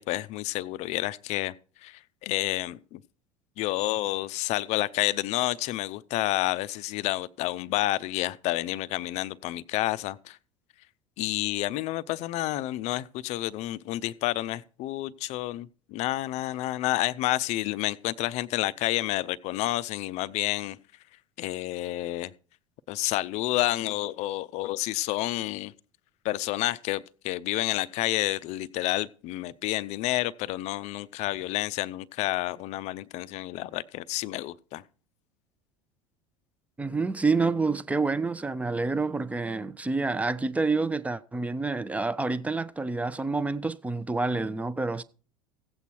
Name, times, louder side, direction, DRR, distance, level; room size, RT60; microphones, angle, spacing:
voice 1, 0.0-1.5 1.8-3.0 3.6-10.4 11.2-20.8 21.4-22.3 22.9-25.7 26.2-34.8, left 16 dB, 40° left, 0.5 m, -29 dB
voice 2, 36.8-45.0, right 3 dB, 10° right, 0.6 m, -28 dB
16.0 x 8.2 x 4.5 m
figure-of-eight pair, 75°, 17 cm